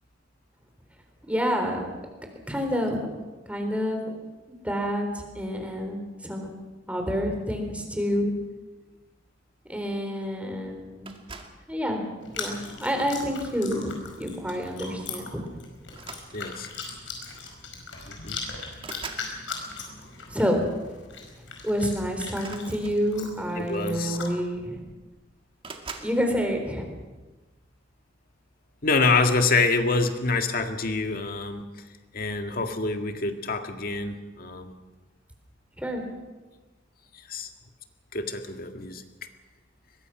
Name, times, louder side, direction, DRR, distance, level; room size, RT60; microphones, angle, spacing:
voice 1, 1.2-1.9 2.5-3.1 3.5-4.0 4.5-5.1 5.3-6.5 6.9-8.3 9.7-11.1 11.7-12.0 12.4-15.4 20.3-20.6 21.6-24.8 26.0-26.9 35.8-36.0, equal, 5° right, 4 dB, 3.9 m, -28 dB
sound 1, 11.1-11.7 12.6-12.9 14.4-14.5 14.8-15.0 15.9-16.8 17.8-17.9 18.2-19.4 22.3-23.4 24.3-24.4 24.6-25.1 25.6-26.2, right 4 dB, 30° right, 2.2 m, -42 dB
Chewing mastication, 12.2-24.3, left 4 dB, 85° left, 5.0 m, -40 dB
voice 2, 16.3-16.7 18.1-18.4 23.6-24.2 28.8-31.6 32.1-34.7 37.3-37.5 38.1-39.0, left 3 dB, 55° left, 6 dB, 1.9 m, -26 dB
23.0 x 21.5 x 6.1 m, 1.2 s
head